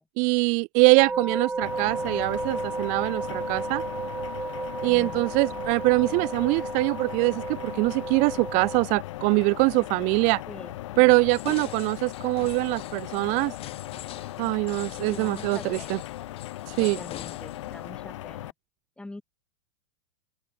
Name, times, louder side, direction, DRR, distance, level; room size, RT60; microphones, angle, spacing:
voice 1, 0.2-3.8 4.8-10.4 11.0-13.5 14.4-16.0 16.7-17.0, right 32 dB, 50° right, 1.1 m, -23 dB
sound 1, 1.0-8.9, right 3 dB, 10° right, 4.6 m, -33 dB
sound 2, 1.6-18.5, left 15 dB, 70° left, 4.2 m, -38 dB
voice 2, 4.8-5.2 10.5-11.2 15.0-16.1 16.8-18.5 19.0-19.2, left 2 dB, 5° left, 4.9 m, -44 dB
sound 3, 11.3-17.9, left 13 dB, 35° left, 4.2 m, -44 dB
open air
hypercardioid pair, 110°, 16 cm